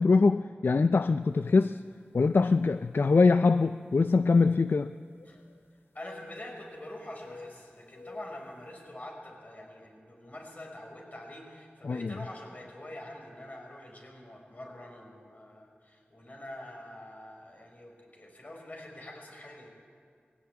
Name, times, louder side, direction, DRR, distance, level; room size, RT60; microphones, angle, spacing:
voice 1, 0.0-1.8 2.1-4.9 11.8-12.1, left 4 dB, 70° left, 11 dB, 0.5 m, -23 dB
sound 1, 1.5-1.7 2.4-2.5 4.4-5.7 5.9-6.8 7.2-8.6, left 3 dB, 90° left, 1.1 m, -50 dB
voice 2, 5.9-19.7, left 1 dB, 45° left, 1 dB, 5.6 m, -45 dB
19.5 x 17.0 x 9.7 m, 2.1 s
wide cardioid pair, 50°, 4 cm